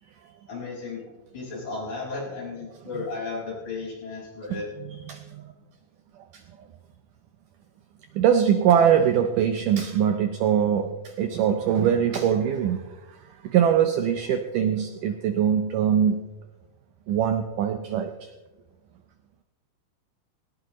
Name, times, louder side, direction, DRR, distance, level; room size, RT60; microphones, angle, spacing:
voice 1, 0.5-1.0 1.3-4.7, left 3 dB, 45° left, -4 dB, 6.5 m, -34 dB
voice 2, 4.5-5.5 8.1-12.8 13.4-16.2 17.1-18.1, right 8 dB, 85° right, 8 dB, 1.8 m, -22 dB
18.5 x 18.0 x 3.1 m, 1.2 s
omnidirectional pair, 4.7 m